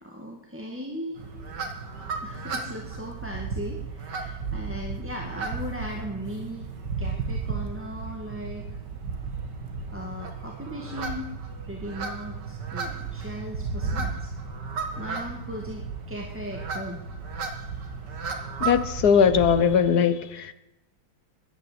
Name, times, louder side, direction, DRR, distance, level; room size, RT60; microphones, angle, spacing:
voice 1, 0.0-1.2 2.2-6.7 7.0-8.7 9.9-11.3 11.6-14.3 15.0-17.0, equal, 5° right, 1.7 m, -38 dB
sound 1, 1.2-19.7, right 4 dB, 60° right, 2.4 m, -34 dB
voice 2, 18.6-20.5, left 7 dB, 60° left, 1.4 m, -20 dB
15.0 x 11.5 x 7.9 m
omnidirectional pair, 2.2 m